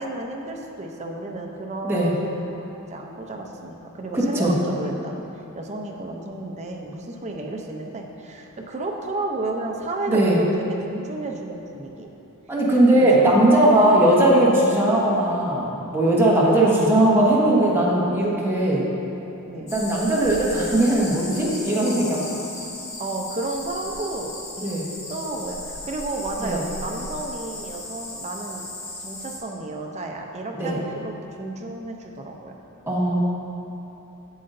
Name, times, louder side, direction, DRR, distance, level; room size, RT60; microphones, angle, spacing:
voice 1, 0.0-5.2 5.5-12.1 13.0-13.3 16.5-16.9 19.5-19.7 23.0-24.3 24.6-24.7 25.1-28.7 29.0-32.5, right 2 dB, 30° right, 1 dB, 0.6 m, -32 dB
voice 2, 4.1-4.5 10.1-10.4 12.5-18.8 19.7-22.2 24.6-24.9 26.4-26.6 30.5-30.8 32.9-33.2, right 1 dB, 10° right, -6 dB, 1.1 m, -19 dB
sound 1, 19.7-29.4, left 2 dB, 35° left, 1.1 m, -36 dB
7.9 x 7.6 x 2.6 m, 3.0 s
head